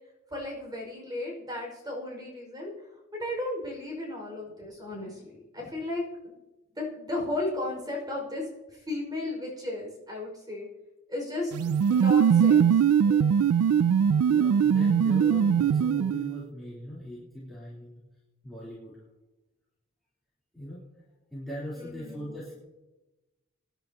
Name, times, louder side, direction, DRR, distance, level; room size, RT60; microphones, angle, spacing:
voice 1, 0.3-2.7 3.1-6.3 6.8-10.7 11.1-12.7 21.7-22.3, left 2 dB, 20° right, -1 dB, 5.6 m, -35 dB
sound 1, 11.5-16.4, right 7 dB, 90° right, 0.3 m, -21 dB
voice 2, 13.0-13.3 14.3-18.0 18.4-19.0 20.5-20.8 21.3-22.5, equal, ahead, -10 dB, 3.6 m, -40 dB
25.0 x 10.5 x 3.0 m, 1.1 s
head